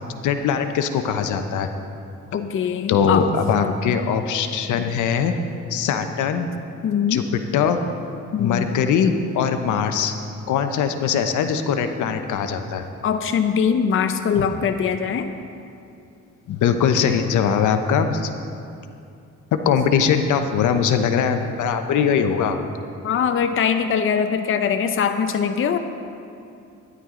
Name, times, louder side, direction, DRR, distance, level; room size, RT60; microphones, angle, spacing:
voice 1, 0.2-1.7 2.9-5.4 5.7-6.5 7.1-7.2 7.5-7.8 8.4-10.1 10.5-12.8 14.4-14.5 16.5-18.3 19.5-22.6, left 7 dB, 80° left, 7 dB, 0.8 m, -21 dB
voice 2, 2.3-3.2 3.6-3.7 6.8-7.2 8.3-8.8 13.0-15.3 23.0-25.8, left 7 dB, 45° left, 8 dB, 0.6 m, -22 dB
13.0 x 11.0 x 3.8 m, 2.5 s
cardioid pair, 90°, 30 cm